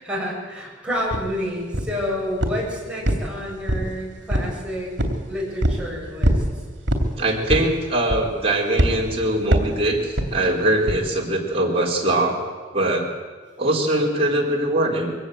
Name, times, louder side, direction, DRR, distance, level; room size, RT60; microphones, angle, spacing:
voice 1, 0.0-4.9 5.3-6.4, equal, 5° right, -5 dB, 7.6 m, -29 dB
sound 1, 1.1-1.3 1.7-2.0 2.4-2.7 3.0-3.9 4.3-4.6 5.0-5.2 5.6-5.8 6.2-6.5 6.9-7.1 7.5-7.8 8.1-8.4 8.8-9.0 9.5-9.8 10.2-10.4 10.9-11.0, right 1 dB, 70° right, 2.9 m, -21 dB
voice 2, 7.2-12.4 12.7-13.1 13.6-15.2, right 1 dB, 30° right, -2 dB, 4.2 m, -22 dB
23.0 x 17.5 x 8.0 m, 1.5 s
head